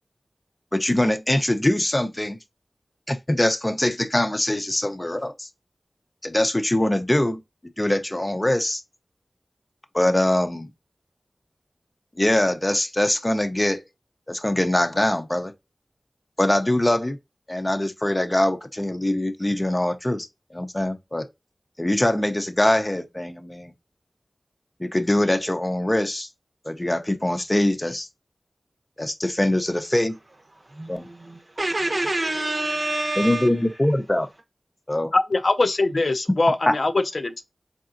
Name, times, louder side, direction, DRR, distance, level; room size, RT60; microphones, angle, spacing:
voice 1, 0.7-2.4 3.1-5.5 6.2-7.4 7.8-8.8 9.9-10.7 12.2-13.8 14.3-15.5 16.4-17.2 17.5-20.3 20.5-21.3 21.8-23.7 24.8-26.3 26.7-28.1 29.0-30.2 30.9-31.1 33.1-34.3 34.9-35.1 36.7-36.8, left 1 dB, 25° left, 0.6 m, -23 dB
voice 2, 30.5-33.6, right 2 dB, 50° right, 0.9 m, -27 dB
voice 3, 35.1-37.4, left 2 dB, 70° left, 0.5 m, -22 dB
3.9 x 3.5 x 2.5 m
wide cardioid pair, 60°, 0 cm